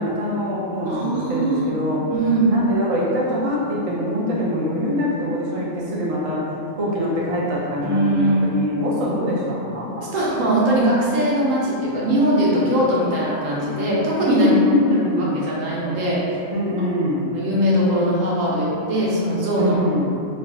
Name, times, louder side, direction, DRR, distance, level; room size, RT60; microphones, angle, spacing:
voice 1, 0.0-2.1 2.5-9.9 14.3-15.5 16.5-17.3 19.6-20.1, left 1 dB, 45° right, -5 dB, 0.4 m, -23 dB
voice 2, 0.8-1.7 2.1-2.5 7.8-8.5 9.9-14.5 15.2-16.2 17.3-19.8, right 1 dB, 80° right, -6 dB, 1.1 m, -21 dB
3.4 x 2.4 x 3.4 m, 2.7 s
omnidirectional pair, 1.4 m